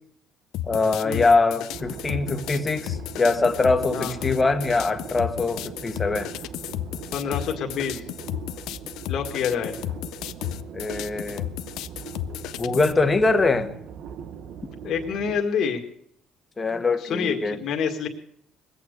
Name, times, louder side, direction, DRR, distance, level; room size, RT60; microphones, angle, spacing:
sound 1, 0.5-12.9, left 14 dB, 80° left, 0.5 m, -33 dB
voice 1, 0.7-6.3 10.7-11.5 12.6-13.7 16.6-17.6, left 3 dB, 25° left, 7 dB, 1.5 m, -23 dB
sound 2, 1.7-15.4, right 8 dB, 70° right, 1.0 m, -40 dB
voice 2, 7.1-8.0 9.1-9.7 14.8-15.8 16.7-18.1, left 6 dB, 60° left, 2 dB, 1.9 m, -27 dB
20.5 x 8.6 x 6.6 m, 0.67 s
cardioid pair, 100°, 0 cm